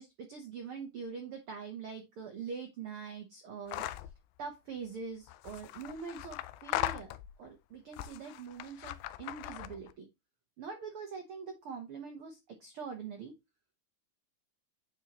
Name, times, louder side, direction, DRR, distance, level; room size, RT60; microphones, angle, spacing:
voice 1, 0.0-3.8 4.4-10.1 10.6-13.3, right 5 dB, 85° right, 3 dB, 1.2 m, -43 dB
sound 1, 3.7-4.1 5.3-7.5 7.9-9.9, left 15 dB, 85° left, 2.2 m, -39 dB
8.8 x 4.6 x 2.9 m, 0.22 s
omnidirectional pair, 4.0 m